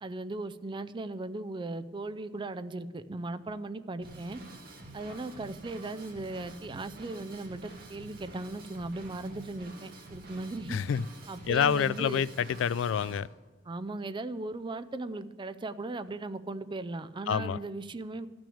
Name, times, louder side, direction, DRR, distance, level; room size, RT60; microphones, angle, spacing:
voice 1, 0.0-4.4 4.9-10.8 11.3-12.3 13.7-18.3, right 2 dB, 25° right, 0.4 m, -38 dB
Drum kit / Drum, 4.0-13.2, right 2 dB, 50° right, 2.1 m, -48 dB
voice 2, 10.7-11.0 11.5-13.3 17.3-17.6, left 7 dB, 70° left, 0.3 m, -27 dB
12.5 x 6.1 x 8.5 m
head